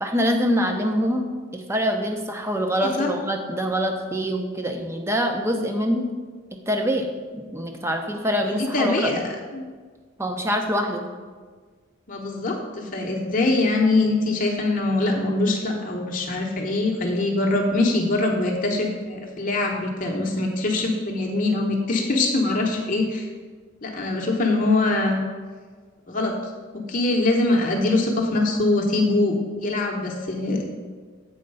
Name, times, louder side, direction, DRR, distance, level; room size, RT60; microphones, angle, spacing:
voice 1, 0.0-1.3 1.5-6.1 6.7-7.1 7.3-9.1 10.2-11.1, equal, 15° right, 4 dB, 0.6 m, -24 dB
voice 2, 8.4-9.2 9.5-9.6 12.1-23.3 23.8-25.2 26.1-26.3 26.7-30.7, left 2 dB, 40° left, 0 dB, 0.8 m, -23 dB
7.8 x 4.3 x 5.4 m, 1.5 s
head